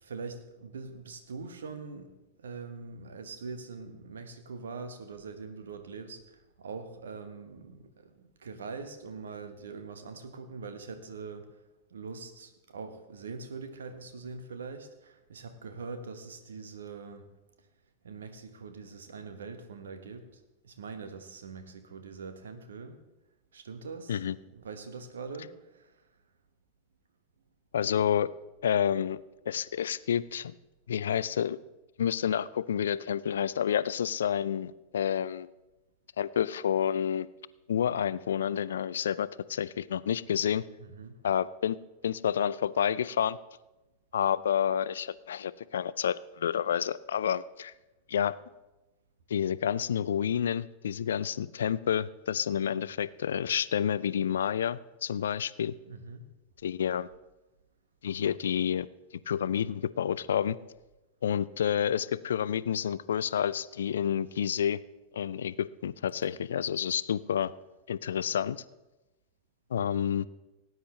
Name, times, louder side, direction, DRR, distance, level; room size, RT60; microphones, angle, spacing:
voice 1, 0.0-11.6 11.9-17.3 18.0-23.0 23.5-24.2 24.5-25.9 40.8-41.2 55.9-56.3, right 4 dB, 65° right, 8 dB, 1.2 m, -43 dB
voice 2, 27.7-28.3 28.6-29.2 29.5-30.5 30.9-31.6 32.0-35.5 36.2-37.3 37.7-40.6 41.2-41.8 42.0-43.4 44.1-47.7 48.1-48.4 49.3-55.7 56.6-57.1 58.0-58.9 59.3-60.6 61.2-64.8 65.1-67.5 67.9-68.6 69.7-70.3, left 9 dB, 65° left, 18 dB, 0.3 m, -29 dB
18.0 x 9.5 x 3.3 m, 1.0 s
figure-of-eight pair, 90°, 0 cm